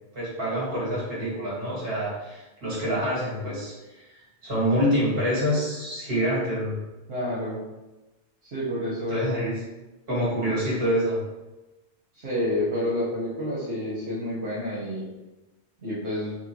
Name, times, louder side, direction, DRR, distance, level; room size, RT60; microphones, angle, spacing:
voice 1, 0.1-6.8 9.1-9.6 10.1-11.2, equal, 60° right, -7 dB, 1.9 m, -26 dB
voice 2, 7.1-7.6 8.4-9.3 12.1-15.0 15.8-16.4, left 1 dB, 80° right, -9 dB, 1.2 m, -29 dB
4.3 x 2.2 x 3.0 m, 1.1 s
omnidirectional pair, 1.1 m